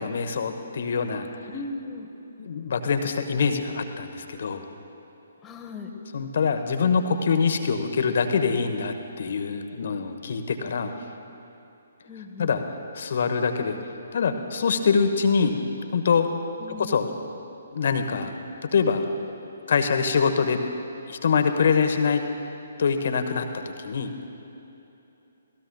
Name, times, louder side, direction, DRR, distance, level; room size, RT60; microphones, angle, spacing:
voice 1, 0.0-1.3 2.4-4.6 6.1-10.9 12.4-12.6 12.9-13.8 14.1-15.6 15.9-16.3 16.8-17.1 17.7-18.3 18.7-19.0 19.7-20.6 21.1-22.2 22.8-24.1, left 5 dB, 55° left, 7 dB, 1.1 m, -24 dB
voice 2, 1.5-2.1 5.4-5.9 12.1-12.6 16.6-17.0, left 3 dB, 10° left, 0 dB, 1.1 m, -37 dB
26.5 x 18.0 x 2.3 m, 3.0 s
figure-of-eight pair, 135°, 0 cm